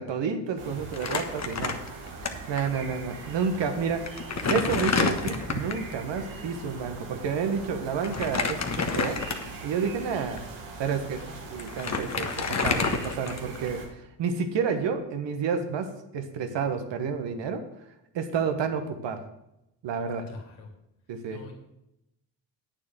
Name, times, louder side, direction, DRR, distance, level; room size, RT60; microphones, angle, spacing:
voice 1, 0.0-1.8 2.5-4.2 4.5-9.2 9.6-10.4 10.8-11.2 11.5-13.8 14.2-17.6 18.1-19.2 19.8-20.2 21.1-21.4, right 6 dB, 60° right, 7 dB, 1.6 m, -30 dB
sound 1, 0.6-13.9, right 4 dB, 85° right, 2.7 m, -41 dB
voice 2, 0.7-1.4 11.1-11.5 20.3-20.7 21.3-21.5, left 4 dB, 80° left, 1 dB, 3.0 m, -47 dB
Crumpling crinkling, 0.9-2.3 2.6-2.7 3.5-3.6 4.1-5.9 8.0-9.6 10.2-10.4 11.3-11.4 11.6-13.7, left 4 dB, 35° left, 1.4 m, -28 dB
8.9 x 7.3 x 6.3 m, 0.86 s
supercardioid pair, 60°, 48 cm